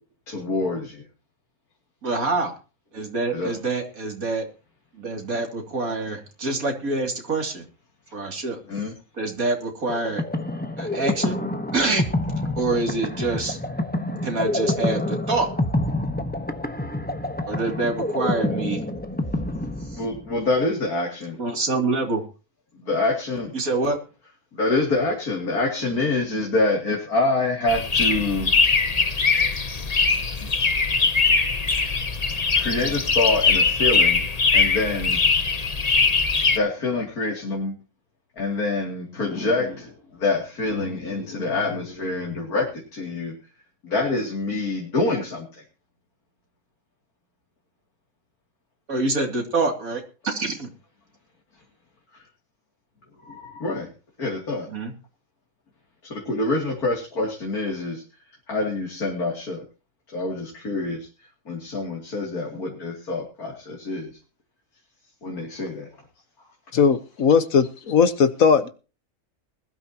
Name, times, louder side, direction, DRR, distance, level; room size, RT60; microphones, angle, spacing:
voice 1, 0.3-1.0 3.3-3.5 8.7-8.9 19.9-21.3 22.8-23.5 24.5-28.5 30.4-30.5 32.6-34.2 34.5-35.2 36.5-37.7 38.4-39.9 40.2-42.7 42.9-43.3 43.8-45.4 53.2-53.9 54.2-54.7 56.1-58.0 58.5-59.6 60.1-61.0 61.5-64.1 65.2-65.9, left 2 dB, 80° left, -1 dB, 3.4 m, -26 dB
voice 2, 2.0-2.5 2.9-4.5 4.9-7.6 8.1-8.6 9.2-10.2 10.8-11.4 11.7-12.1 12.6-13.6 14.2-15.5 17.5-18.8 19.9-20.0 21.4-22.2 23.5-24.0 48.9-50.7 54.7-54.9, right 3 dB, 70° right, 3 dB, 3.2 m, -26 dB
sound 1, 9.9-20.4, left 1 dB, 5° left, 1.1 m, -27 dB
sound 2, 27.7-36.6, left 4 dB, 30° left, 1.0 m, -21 dB
voice 3, 66.7-68.7, left 6 dB, 65° left, 11 dB, 1.6 m, -18 dB
20.5 x 12.5 x 3.0 m, 0.34 s
omnidirectional pair, 1.6 m